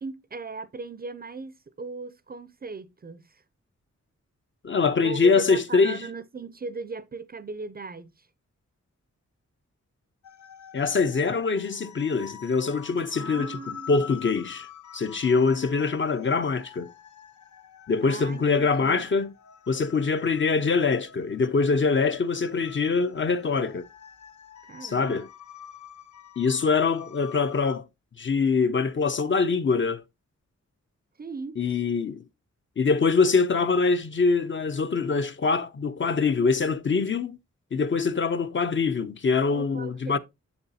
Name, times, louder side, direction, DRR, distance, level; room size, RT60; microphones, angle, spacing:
voice 1, 0.0-3.4 5.0-8.3 13.2-14.1 18.0-19.1 24.6-25.3 31.2-31.6 39.5-40.2, right 4 dB, 35° right, 0.4 m, -38 dB
voice 2, 4.6-6.0 10.7-13.6 13.9-14.7 14.9-16.9 17.9-19.3 19.7-23.9 24.8-25.3 26.4-27.9 28.2-30.0 31.6-32.2 32.8-37.4 37.7-40.2, left 4 dB, 40° left, 0.5 m, -24 dB
sound 1, 10.2-27.8, left 8 dB, 80° left, 0.6 m, -46 dB
6.8 x 6.8 x 2.7 m
wide cardioid pair, 115°, 29 cm